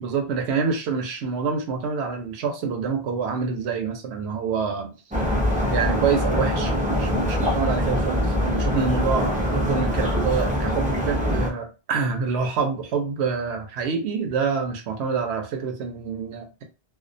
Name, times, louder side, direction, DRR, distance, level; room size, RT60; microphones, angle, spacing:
voice 1, 0.0-4.9 5.7-16.6, right 5 dB, 75° right, 4 dB, 0.9 m, -27 dB
sound 1, 5.1-11.5, equal, 10° right, 0.4 m, -23 dB
2.3 x 2.1 x 2.5 m, 0.31 s
omnidirectional pair, 1.1 m